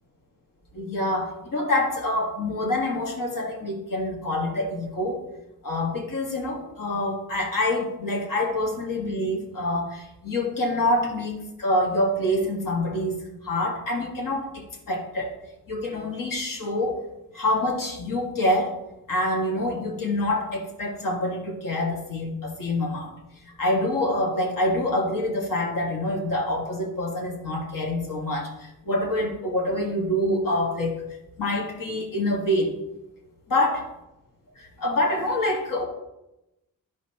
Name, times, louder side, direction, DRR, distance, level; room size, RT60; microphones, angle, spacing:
voice 1, 0.7-5.2 5.6-15.3 15.7-17.0 17.3-18.8 19.1-23.1 23.6-31.0 31.4-32.8 33.5-33.8 34.6-35.8, left 1 dB, 65° left, 0 dB, 1.9 m, -26 dB
14.0 x 5.1 x 2.9 m, 0.93 s
wide cardioid pair, 130°, 35 cm